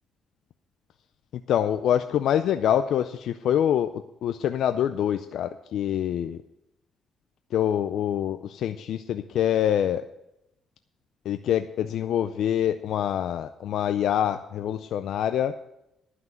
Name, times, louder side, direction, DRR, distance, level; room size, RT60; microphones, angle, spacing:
voice 1, 1.5-3.9 4.2-6.4 7.5-10.1 11.3-15.5, left 10 dB, 75° left, 9 dB, 0.4 m, -25 dB
11.0 x 5.9 x 7.9 m, 0.86 s
cardioid pair, 90°, 0 cm